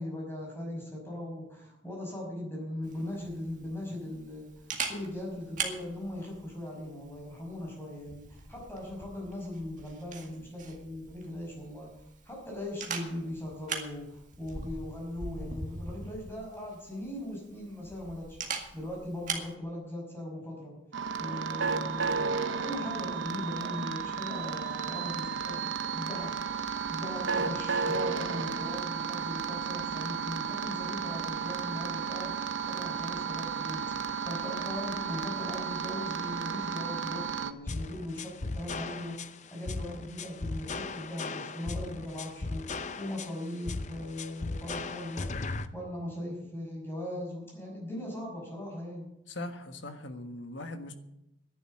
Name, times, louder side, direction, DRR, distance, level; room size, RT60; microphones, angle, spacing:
voice 1, 0.0-4.5 4.9-11.9 12.2-20.7 21.2-22.3 22.6-26.4 26.9-49.1, left 1 dB, 10° left, -2 dB, 5.9 m, -39 dB
Camera, 2.8-19.5, right 4 dB, 40° right, 2.0 m, -42 dB
sound 1, 20.9-37.5, right 5 dB, 80° right, 0.9 m, -33 dB
sound 2, 37.7-45.7, left 3 dB, 35° left, 0.6 m, -37 dB
voice 2, 49.3-50.9, left 1 dB, 75° left, 7 dB, 1.5 m, -40 dB
11.0 x 11.0 x 7.8 m, 0.87 s
head